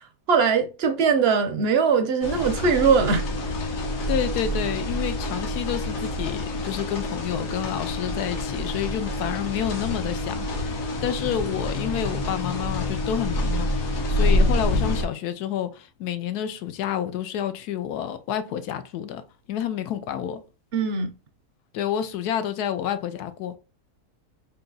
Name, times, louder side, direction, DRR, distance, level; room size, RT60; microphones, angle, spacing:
voice 1, 0.3-3.2 20.7-21.1, right 5 dB, 60° right, 0.6 m, -21 dB
sound 1, 2.2-15.0, left 1 dB, 65° left, 1.3 m, -27 dB
voice 2, 4.1-19.2 19.5-20.4 21.7-23.6, left 10 dB, 90° left, 1.2 m, -29 dB
3.8 x 2.8 x 3.9 m
omnidirectional pair, 1.6 m